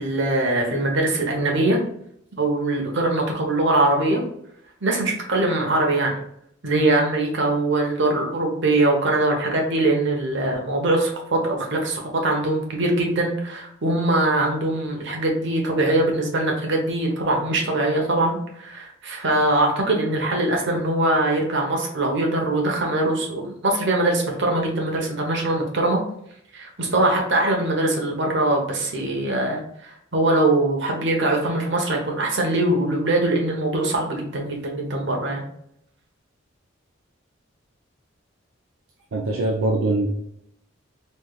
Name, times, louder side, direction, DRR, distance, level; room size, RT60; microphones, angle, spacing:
voice 1, 0.0-1.8 2.4-4.2 4.8-6.1 6.6-26.0 26.5-35.4, right 2 dB, 65° right, 0 dB, 1.0 m, -22 dB
voice 2, 39.1-40.1, right 2 dB, 85° right, 0 dB, 0.5 m, -22 dB
4.2 x 3.2 x 2.3 m, 0.71 s
head